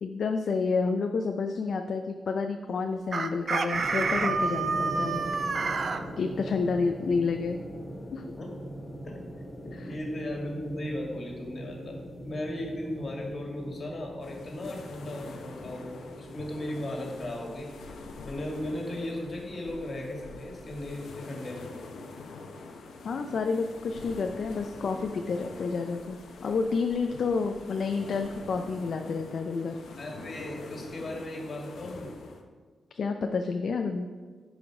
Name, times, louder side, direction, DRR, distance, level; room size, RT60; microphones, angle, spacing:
voice 1, 0.0-5.2 6.2-7.6 8.1-8.2 9.8-9.9 23.0-29.8 32.9-34.1, left 4 dB, 65° left, 5 dB, 0.5 m, -29 dB
Chicken rooster, 3.1-6.0, right 4 dB, 50° right, 0.5 m, -28 dB
sound 1, 3.7-17.6, equal, 25° left, 1.9 m, -41 dB
voice 2, 9.6-12.0 12.2-17.7 18.2-21.7 30.0-32.3, left 1 dB, 40° left, 0 dB, 2.1 m, -36 dB
sound 2, 14.2-32.4, left 3 dB, 85° left, 0.9 m, -45 dB
10.5 x 5.0 x 4.8 m, 1.5 s
cardioid pair, 105°, 0 cm